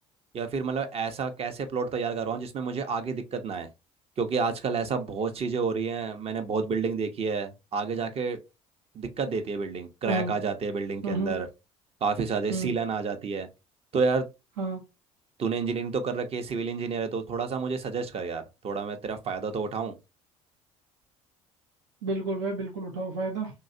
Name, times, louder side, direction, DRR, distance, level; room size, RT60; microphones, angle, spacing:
voice 1, 0.3-3.7 4.2-8.4 8.9-11.5 12.0-13.5 13.9-14.3 15.4-19.9, right 5 dB, 40° right, 0.7 m, -30 dB
voice 2, 11.0-11.4 12.5-12.7 14.6-14.8 22.0-23.5, right 3 dB, 85° right, 0.8 m, -30 dB
3.0 x 2.8 x 2.6 m
supercardioid pair, 75°, 15 cm